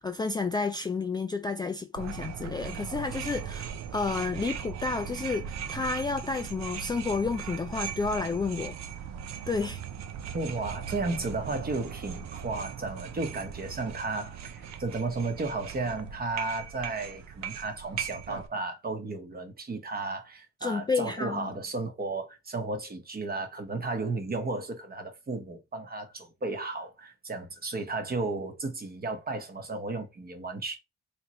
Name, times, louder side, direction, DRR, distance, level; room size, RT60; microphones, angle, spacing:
voice 1, 0.0-8.8 9.5-9.8 20.6-21.5, left 4 dB, 15° left, 0.3 m, -31 dB
sound 1, 2.0-18.5, right 8 dB, 65° right, 0.6 m, -39 dB
voice 2, 10.3-30.8, right 3 dB, 30° right, 1.0 m, -34 dB
3.4 x 3.0 x 2.9 m
cardioid pair, 90°, 30 cm